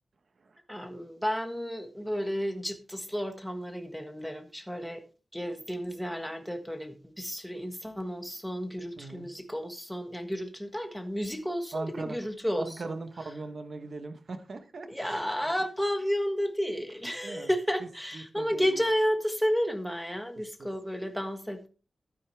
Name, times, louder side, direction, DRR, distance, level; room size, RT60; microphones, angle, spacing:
voice 1, 0.7-5.0 5.3-12.9 14.9-21.7, equal, ahead, 1.6 m, -32 dB
voice 2, 9.0-9.3 11.7-12.2 12.6-15.6 17.2-17.5 18.1-18.9 20.6-20.7, right 3 dB, 55° right, 1.1 m, -39 dB
12.5 x 9.7 x 3.4 m
wide cardioid pair, 150°, 0 cm